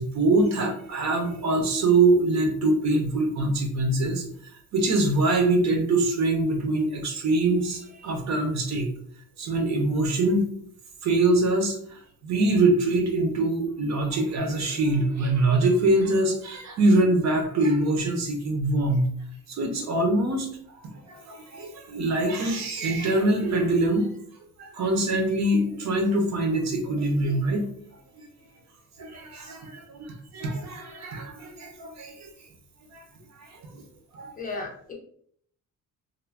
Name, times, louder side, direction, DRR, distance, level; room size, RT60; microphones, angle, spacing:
voice 1, 0.0-4.2 4.7-8.9 9.4-10.5 11.0-19.1 19.5-20.5 21.1-24.1 24.6-27.7 28.2-28.3 29.0-32.3 32.9-33.0 33.4-33.6 34.1-34.3, right 2 dB, 60° right, 3 dB, 0.7 m, -24 dB
voice 2, 34.4-34.9, left 3 dB, 25° left, 0 dB, 0.5 m, -35 dB
2.4 x 2.1 x 3.3 m, 0.62 s
cardioid pair, 160°, 31 cm